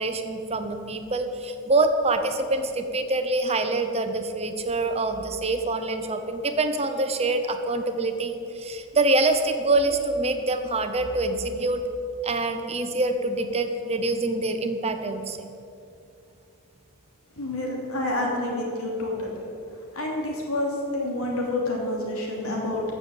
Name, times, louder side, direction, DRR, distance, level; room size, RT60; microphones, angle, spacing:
voice 1, 0.0-11.8 12.2-15.5, right 2 dB, 30° right, 7 dB, 0.8 m, -25 dB
voice 2, 17.4-19.3 19.9-22.8, left 1 dB, 70° left, -2 dB, 3.1 m, -28 dB
14.0 x 7.0 x 7.9 m, 2.6 s
head